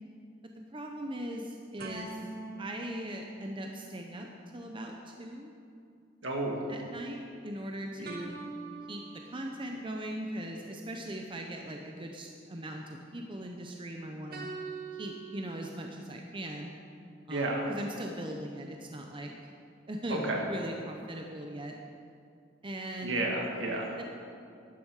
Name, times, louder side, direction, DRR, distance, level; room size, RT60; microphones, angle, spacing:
voice 1, 0.7-2.3 2.6-4.3 4.5-5.5 6.7-8.4 8.9-9.0 9.3-14.5 14.9-16.7 17.3-19.3 19.9-21.7 22.6-23.3 24.0-24.1, right 1 dB, 25° right, 2 dB, 0.7 m, -39 dB
sound 1, 1.8-4.3 8.0-9.9 14.3-15.7, right 3 dB, 50° right, 1.2 m, -44 dB
voice 2, 6.2-6.6 17.3-17.7 20.1-20.4 23.0-24.0, right 2 dB, 70° right, 0 dB, 2.1 m, -31 dB
12.0 x 11.0 x 4.8 m, 2.4 s
head